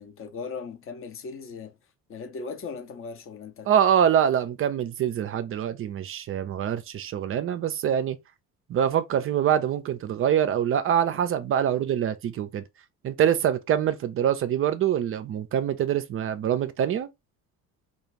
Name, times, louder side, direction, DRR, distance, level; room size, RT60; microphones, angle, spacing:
voice 1, 0.0-1.8 2.1-3.7, left 5 dB, 30° left, 0.6 m, -38 dB
voice 2, 3.7-8.2 8.7-12.6 13.0-17.1, right 9 dB, 35° right, 0.4 m, -24 dB
2.4 x 2.3 x 3.0 m
hypercardioid pair, 55°, 42 cm